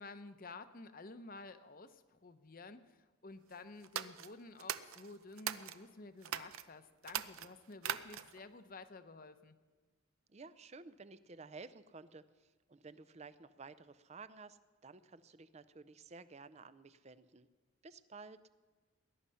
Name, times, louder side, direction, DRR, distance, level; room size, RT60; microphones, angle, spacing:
voice 1, 0.0-9.6, left 3 dB, 40° left, 10 dB, 0.8 m, -52 dB
sound 1, 3.8-5.8 6.2-6.6 7.0-8.4, right 9 dB, 80° right, 0.6 m, -41 dB
voice 2, 10.3-17.5 17.8-18.4, right 4 dB, 30° right, 14 dB, 0.5 m, -53 dB
20.0 x 11.0 x 5.6 m, 1.3 s
head